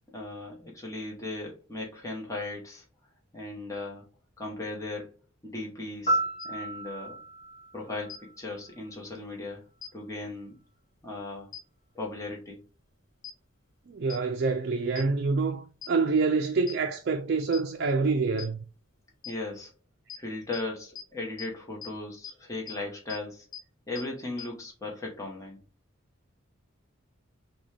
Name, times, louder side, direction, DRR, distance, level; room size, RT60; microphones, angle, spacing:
voice 1, 0.1-2.8 3.3-4.0 4.4-5.1 5.4-7.2 7.7-9.7 9.9-10.6 11.0-11.5 11.9-12.6 19.2-19.7 20.2-23.5 23.9-25.6, left 2 dB, 15° left, 1.0 m, -37 dB
Piano, 6.1-9.0 17.1-17.3, right 1 dB, 35° left, 1.6 m, -33 dB
sound 1, 6.4-6.5 8.1-8.2 9.8-9.9 11.5-11.6 13.2-13.3 14.1-14.2 15.0-15.1 15.8-15.9 16.7-16.8 17.5-17.6 18.4-18.5 19.2-19.3 20.1-20.2 20.5-20.6 21.0-21.1 21.4-21.5 21.8-21.9 22.2-22.3 22.7-22.8 23.1-23.2 23.5-23.6 24.0-24.1 24.4-24.5, left 10 dB, 75° left, 0.7 m, -40 dB
voice 2, 13.9-18.6, right 4 dB, 55° right, 0.4 m, -26 dB
6.0 x 2.3 x 3.3 m
head